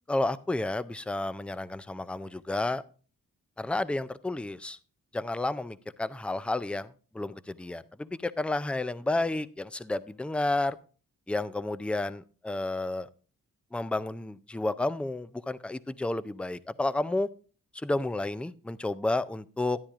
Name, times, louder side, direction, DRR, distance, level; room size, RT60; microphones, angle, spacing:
voice 1, 0.1-2.8 3.6-4.8 5.1-10.8 11.3-13.1 13.7-17.3 17.7-19.8, left 2 dB, 5° left, 0.3 m, -31 dB
12.5 x 10.0 x 2.4 m
wide cardioid pair, 90°, 35 cm